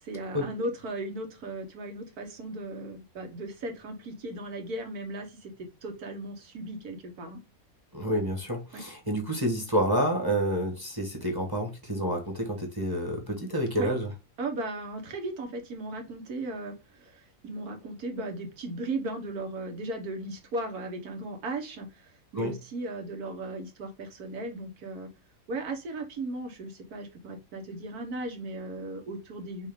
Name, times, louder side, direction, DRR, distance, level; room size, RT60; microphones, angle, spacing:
voice 1, 0.0-7.4 8.7-8.8 13.8-13.9 14.4-25.1 25.5-29.7, right 2 dB, 85° right, 1.6 m, -36 dB
voice 2, 7.9-14.1 22.3-22.5, equal, 15° right, 1.0 m, -29 dB
6.0 x 2.4 x 3.4 m
omnidirectional pair, 1.6 m